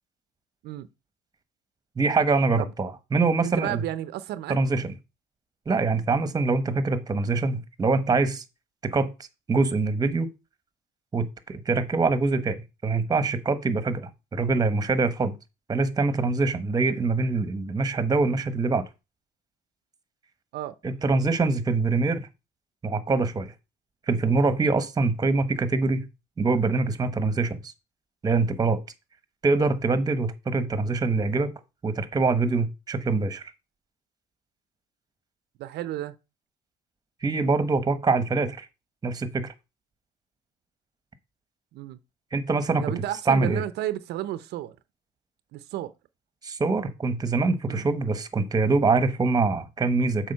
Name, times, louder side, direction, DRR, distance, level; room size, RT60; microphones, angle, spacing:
voice 1, 2.0-3.8 4.5-4.9 5.7-8.4 8.8-9.1 9.5-10.3 11.1-15.4 15.7-18.8 20.8-22.3 22.8-23.5 24.1-26.1 26.4-27.6 28.2-28.8 29.4-31.5 31.8-33.5 37.2-38.7 39.0-39.5 42.3-42.9 43.3-43.6 46.4-50.3, right 3 dB, 20° right, 1.1 m, -24 dB
voice 2, 3.4-4.6 20.5-20.8 35.6-36.2 41.7-42.0 42.8-44.8 45.5-45.9 47.7-47.9, right 13 dB, 75° right, 0.6 m, -32 dB
7.5 x 4.8 x 5.5 m
cardioid pair, 110°, 17 cm